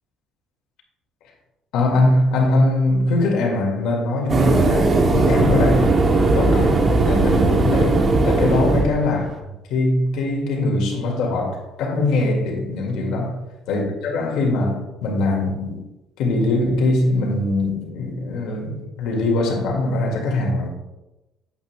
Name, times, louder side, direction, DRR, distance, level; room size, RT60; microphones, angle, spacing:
voice 1, 1.7-5.9 6.3-9.3 9.7-13.3 13.7-15.8 16.2-20.7, left 2 dB, 70° left, 2.0 m, -21 dB
sound 1, 4.3-9.4, right 3 dB, 25° right, 0.7 m, -18 dB
9.1 x 8.3 x 2.3 m
cardioid pair, 165°, 0 cm